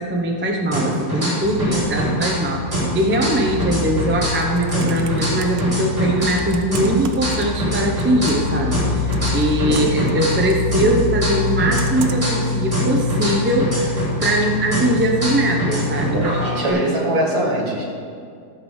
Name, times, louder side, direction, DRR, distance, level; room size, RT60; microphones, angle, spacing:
voice 1, 0.0-16.9, right 1 dB, 10° right, 1 dB, 0.5 m, -21 dB
sound 1, 0.7-2.4 2.7-6.4 6.7-10.5 10.7-14.4 14.7-16.7, equal, 30° right, 3.8 m, -24 dB
sound 2, 1.4-16.3, left 4 dB, 55° left, 1.2 m, -26 dB
Computer keyboard, 4.2-5.6 6.2-7.7 8.0-8.6 9.1-10.6 11.8-12.4 13.1-13.2, right 8 dB, 80° right, 1.4 m, -37 dB
voice 2, 9.7-10.2 16.1-17.8, right 1 dB, 55° right, -2 dB, 2.5 m, -23 dB
13.5 x 6.0 x 6.5 m, 2.3 s
omnidirectional pair, 1.9 m